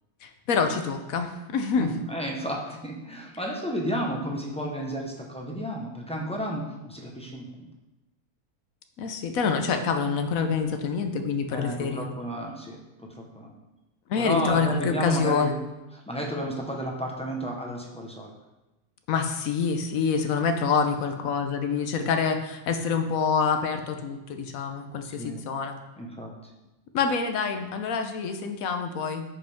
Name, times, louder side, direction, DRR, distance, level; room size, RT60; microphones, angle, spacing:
voice 1, 0.2-1.9 9.0-12.1 14.1-15.5 19.1-25.8 26.9-29.2, left 5 dB, 75° left, 6 dB, 1.2 m, -26 dB
voice 2, 1.7-7.6 11.5-13.5 14.2-15.5 16.1-18.3 25.0-25.4 26.0-26.3, equal, 5° left, -1 dB, 0.9 m, -32 dB
10.0 x 5.1 x 3.6 m, 1.0 s
omnidirectional pair, 1.5 m